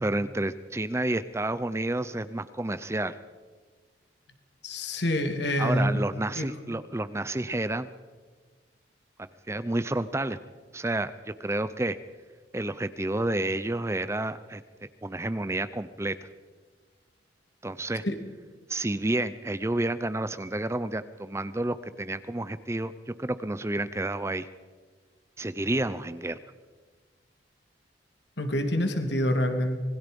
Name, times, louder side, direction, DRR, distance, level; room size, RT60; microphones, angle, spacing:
voice 1, 0.0-3.2 5.6-7.9 9.5-10.4 10.7-12.0 12.5-16.2 17.6-18.0 18.7-24.5 25.4-26.4, right 2 dB, 15° right, 13 dB, 0.6 m, -30 dB
voice 2, 4.6-6.0 6.4-6.5 18.0-18.2 28.4-29.8, equal, 65° left, 6 dB, 2.6 m, -26 dB
26.5 x 21.0 x 5.3 m, 1.4 s
head